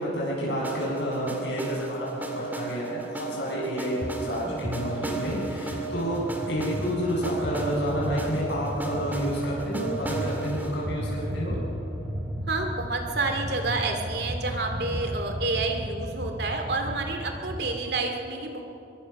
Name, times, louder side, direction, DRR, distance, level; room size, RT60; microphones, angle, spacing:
voice 1, 0.0-11.6, equal, 70° left, -5 dB, 7.5 m, -30 dB
sound 1, 0.6-12.5, right 3 dB, 10° right, 2.2 m, -35 dB
sound 2, 4.0-4.2 4.4-17.7, equal, 30° right, 2.6 m, -35 dB
voice 2, 12.5-18.6, right 3 dB, 60° right, 4 dB, 2.6 m, -29 dB
23.5 x 22.5 x 6.0 m, 2.8 s
head